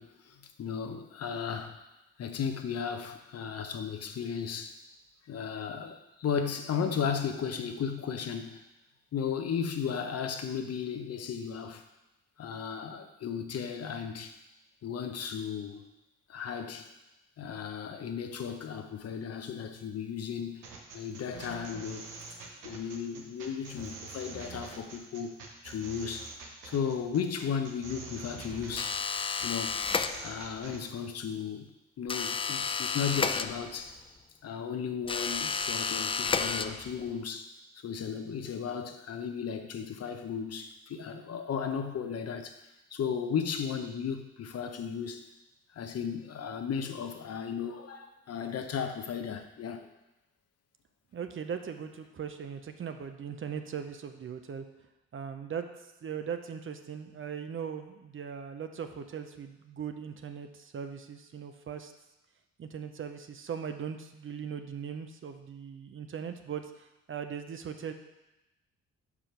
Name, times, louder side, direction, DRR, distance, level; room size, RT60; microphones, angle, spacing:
voice 1, 0.0-1.8 2.2-4.8 5.3-8.6 9.1-11.8 12.4-14.4 14.8-15.8 16.3-16.9 17.4-20.7 20.9-22.2 22.6-26.3 26.6-29.0 29.4-29.8 30.2-31.7 32.0-34.0 34.4-37.5 37.8-42.5 42.9-45.2 45.7-49.9, left 7 dB, 55° left, 7 dB, 0.8 m, -35 dB
sound 1, 20.6-30.8, right 4 dB, 85° right, 1.1 m, -45 dB
sound 2, 28.8-30.6 32.1-34.0 35.1-37.1, left 5 dB, 20° left, 0.3 m, -32 dB
voice 2, 51.1-54.6 55.1-55.7 56.0-61.9 62.6-67.9, right 7 dB, 45° right, 7 dB, 0.7 m, -39 dB
5.0 x 4.8 x 5.8 m, 0.95 s
supercardioid pair, 60°, 30 cm